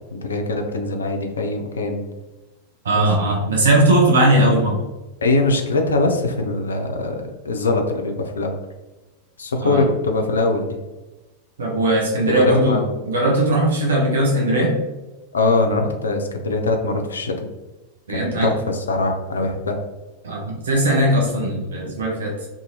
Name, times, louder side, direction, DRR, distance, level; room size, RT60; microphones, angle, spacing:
voice 1, 0.1-2.0 3.0-3.1 5.2-8.6 9.4-10.8 12.3-12.9 15.3-17.5 18.1-19.8, left 2 dB, 70° left, 4 dB, 0.3 m, -22 dB
voice 2, 2.8-4.8 9.6-9.9 11.6-14.7 18.1-18.5 20.2-22.3, right 1 dB, 65° right, -2 dB, 0.6 m, -19 dB
2.5 x 2.4 x 2.7 m, 1.1 s
figure-of-eight pair, 90°, 0 cm